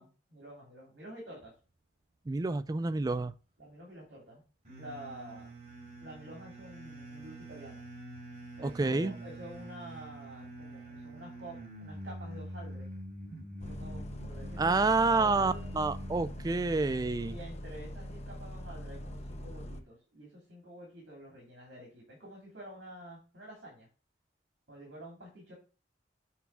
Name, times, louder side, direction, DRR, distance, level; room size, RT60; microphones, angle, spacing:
voice 1, 0.0-1.5 3.6-4.4 4.8-5.5 6.0-7.8 8.6-12.9 13.7-15.7 17.2-23.9 24.7-25.5, equal, 70° right, 3.1 m, -48 dB
voice 2, 2.3-3.3 8.6-9.1 14.6-17.3, right 3 dB, 20° right, 0.3 m, -28 dB
sound 1, 4.6-16.6, right 1 dB, 40° right, 4.3 m, -45 dB
Bus, 13.6-19.8, equal, 35° left, 0.8 m, -43 dB
8.3 x 3.4 x 6.0 m
head